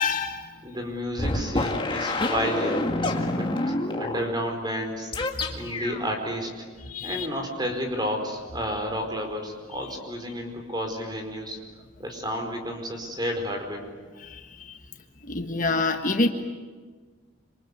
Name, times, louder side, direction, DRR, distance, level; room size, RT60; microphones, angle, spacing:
voice 1, 0.0-0.5 6.9-7.3 14.2-14.8 15.3-16.3, left 3 dB, 40° left, 5 dB, 1.5 m, -27 dB
voice 2, 0.6-2.9 3.3-5.1 5.5-6.5 7.0-11.6 12.0-13.9, equal, 20° right, 4 dB, 4.6 m, -31 dB
sound 1, 1.2-4.3 5.1-6.1, left 2 dB, 25° left, 2.1 m, -27 dB
27.0 x 27.0 x 8.2 m, 1.4 s
head